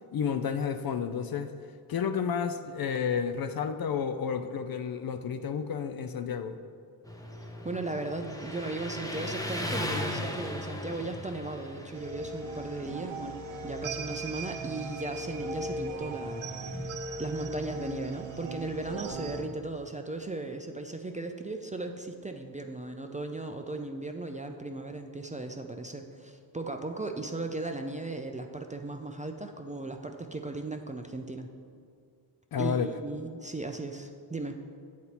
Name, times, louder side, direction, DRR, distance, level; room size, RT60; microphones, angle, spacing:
voice 1, 0.1-1.5 1.9-6.6 32.5-33.0, left 7 dB, 45° left, 9 dB, 0.5 m, -31 dB
Motorcycle, 7.0-19.7, left 1 dB, 5° left, 0.8 m, -40 dB
voice 2, 7.4-16.9 17.2-31.5 32.6-34.6, right 2 dB, 15° right, 4 dB, 0.4 m, -37 dB
sound 1, 11.9-19.4, right 2 dB, 70° right, 0.7 m, -38 dB
7.8 x 4.2 x 4.3 m, 2.2 s
supercardioid pair, 55°, 50 cm